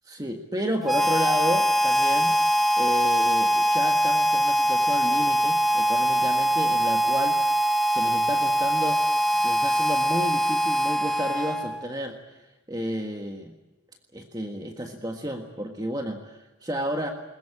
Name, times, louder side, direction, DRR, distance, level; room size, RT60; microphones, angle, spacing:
voice 1, 0.1-2.3 2.8-7.4 7.9-9.0 9.3-12.2 12.7-13.5 14.1-17.1, equal, 20° right, 3 dB, 1.6 m, -31 dB
Harmonica, 0.8-11.9, equal, ahead, 0.7 m, -22 dB
21.5 x 21.0 x 8.7 m, 1.1 s
head